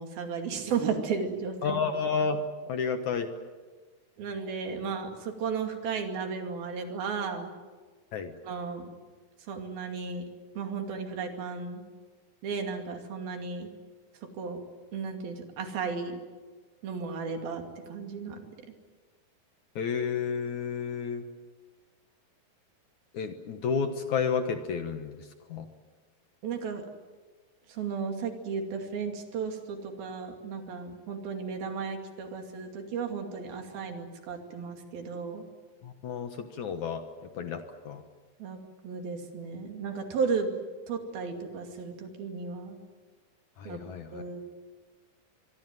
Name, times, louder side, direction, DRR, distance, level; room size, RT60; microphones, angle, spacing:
voice 1, 0.0-1.8 4.2-7.5 8.4-8.9 9.5-10.2 10.6-11.8 12.4-13.7 14.4-14.6 14.9-16.2 16.8-17.6 17.9-18.4 26.4-26.8 27.7-35.4 38.4-38.6 38.8-40.5 40.9-42.8 43.7-43.8 44.1-44.4, right 5 dB, 70° right, 5 dB, 4.3 m, -34 dB
voice 2, 1.6-3.3 8.1-8.3 19.8-21.2 23.1-25.7 35.8-37.0 37.4-38.0 43.6-44.2, left 6 dB, 60° left, 8 dB, 2.3 m, -31 dB
24.5 x 23.0 x 9.2 m, 1.4 s
omnidirectional pair, 4.5 m